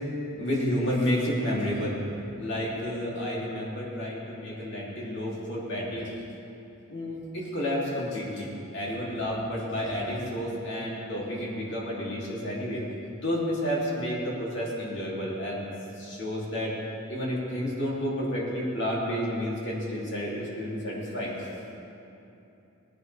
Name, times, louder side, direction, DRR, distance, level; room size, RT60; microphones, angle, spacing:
voice 1, 0.4-2.0 2.4-6.1 6.9-12.8 13.2-15.6 16.0-16.7 17.1-21.4, equal, 55° left, -5 dB, 3.0 m, -30 dB
19.0 x 11.0 x 3.4 m, 2.8 s
head